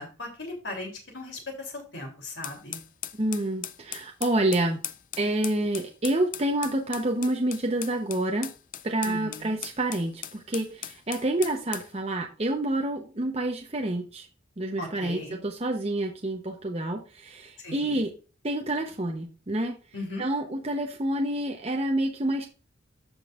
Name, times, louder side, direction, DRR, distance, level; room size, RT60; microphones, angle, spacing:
voice 1, 0.0-2.8 9.0-9.5 14.8-15.4 17.6-18.0 19.9-20.2, left 2 dB, 65° left, 2 dB, 3.2 m, -38 dB
sound 1, 2.4-11.9, left 11 dB, 45° left, 0.4 m, -39 dB
voice 2, 3.1-4.8 5.2-8.5 8.8-14.3 14.6-18.1 18.4-19.8 20.2-22.5, right 1 dB, 30° right, 2 dB, 0.9 m, -28 dB
14.0 x 5.3 x 2.5 m, 0.33 s
head